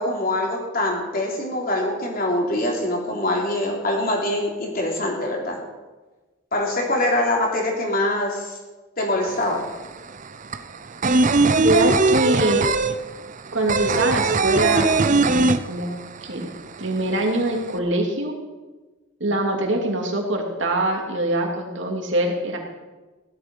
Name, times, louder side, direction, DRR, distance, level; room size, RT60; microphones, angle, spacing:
voice 1, 0.0-5.6 6.5-8.6 9.0-9.6, left 1 dB, 45° left, -1 dB, 3.5 m, -24 dB
sound 1, 9.3-9.4 9.6-16.2 16.5-16.6 16.9-17.7, right 3 dB, 40° right, 0.6 m, -19 dB
voice 2, 11.6-12.6 13.5-15.9 16.2-16.5 16.8-18.3 19.2-22.6, right 1 dB, 65° right, 1 dB, 2.9 m, -23 dB
16.5 x 12.0 x 5.5 m, 1.2 s
head